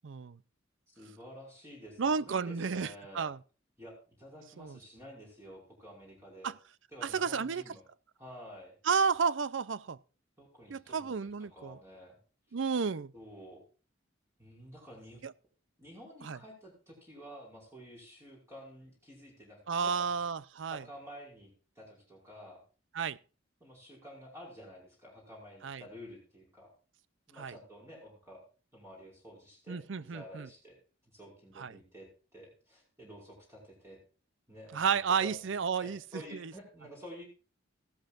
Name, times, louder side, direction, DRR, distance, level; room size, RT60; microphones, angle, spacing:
voice 1, 0.0-0.4 2.0-3.4 4.6-4.8 6.4-6.5 7.0-7.6 8.8-10.0 10.7-11.8 12.5-13.1 15.2-15.3 16.2-16.4 19.7-20.8 22.9-23.2 25.6-25.8 27.4-27.6 29.7-30.5 31.6-31.8 34.7-36.5, right 6 dB, 65° right, 0.5 m, -32 dB
voice 2, 1.0-3.3 3.8-6.5 6.9-7.8 8.2-8.8 10.4-11.1 11.5-12.2 13.1-13.6 14.4-15.2 15.8-20.2 20.7-22.6 23.6-26.7 27.3-28.4 28.7-30.8 31.1-34.0 34.5-35.5 35.8-37.2, equal, 15° right, 5.3 m, -51 dB
15.5 x 13.0 x 2.5 m
head